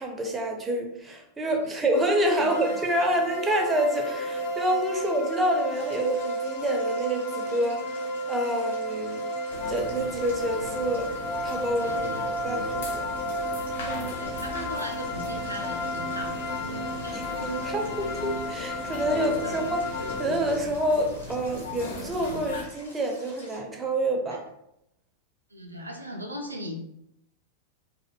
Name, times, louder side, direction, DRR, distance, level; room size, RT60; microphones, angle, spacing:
voice 1, 0.0-9.2 9.7-11.1 11.4-12.1 12.4-13.0 13.9-14.2 17.1-19.8 20.2-24.4, right 1 dB, 15° right, 2 dB, 0.4 m, -28 dB
sound 1, 1.9-20.2, equal, 40° left, 0.9 m, -32 dB
Stream, 5.7-23.6, left 1 dB, 80° left, 0.8 m, -51 dB
sound 2, 9.5-22.6, left 4 dB, 60° left, 0.4 m, -39 dB
voice 2, 11.8-12.2 14.1-16.5 16.9-17.7 19.2-19.6 25.5-26.8, equal, 85° right, 1 dB, 0.3 m, -39 dB
2.5 x 2.1 x 2.3 m, 0.80 s
figure-of-eight pair, 90°, 0 cm